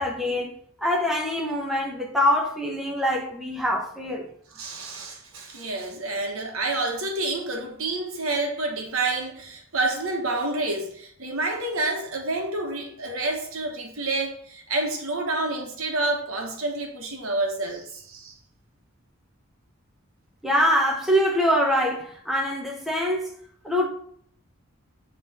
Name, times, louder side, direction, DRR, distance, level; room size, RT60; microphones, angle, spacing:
voice 1, 0.0-4.3 20.4-23.3 23.6-23.9, equal, ahead, 0.8 m, -24 dB
voice 2, 4.5-18.3, right 2 dB, 75° right, 1.3 m, -28 dB
7.8 x 3.2 x 4.2 m
head